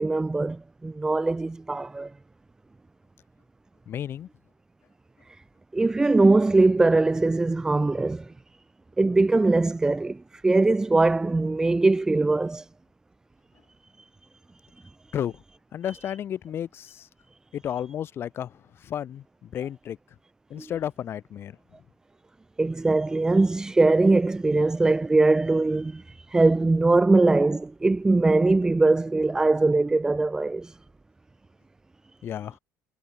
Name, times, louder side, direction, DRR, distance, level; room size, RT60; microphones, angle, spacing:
voice 1, 0.0-2.1 5.7-8.3 9.0-12.7 14.0-14.1 20.5-20.7 22.6-30.8, right 3 dB, 10° right, 0.9 m, -21 dB
voice 2, 3.9-4.3 15.1-15.4 15.7-17.1 17.5-20.0 20.5-21.6 32.2-32.6, left 10 dB, 35° left, 3.1 m, -33 dB
cardioid pair, 160°, 7 cm